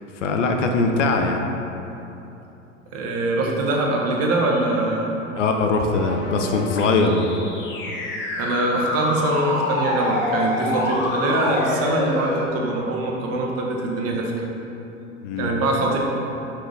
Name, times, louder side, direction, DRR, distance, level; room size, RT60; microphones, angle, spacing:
voice 1, 0.2-1.5 5.3-7.3 15.2-15.6, left 3 dB, 75° left, 4 dB, 0.7 m, -21 dB
voice 2, 2.9-5.2 8.4-14.3 15.4-16.0, right 2 dB, 40° right, -1 dB, 1.2 m, -23 dB
sound 1, 5.9-12.5, left 2 dB, 30° left, 0.9 m, -27 dB
5.7 x 5.1 x 3.9 m, 3.0 s
hypercardioid pair, 85°, 37 cm